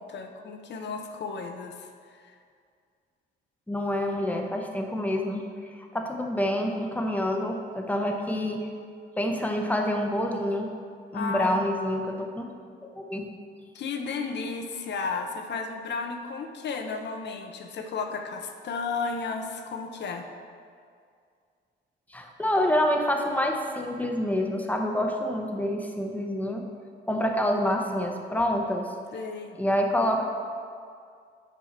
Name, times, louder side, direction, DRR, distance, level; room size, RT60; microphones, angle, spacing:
voice 1, 0.0-1.9 11.1-11.6 13.7-20.3 29.1-29.6, left 4 dB, 60° left, 4 dB, 0.9 m, -33 dB
voice 2, 3.7-5.5 5.9-8.7 9.2-10.7 11.1-12.4 12.9-13.3 22.1-26.7 27.1-28.9 29.6-30.2, left 1 dB, 10° left, 2 dB, 1.0 m, -27 dB
9.4 x 5.5 x 4.3 m, 2.2 s
cardioid pair, 90°, 20 cm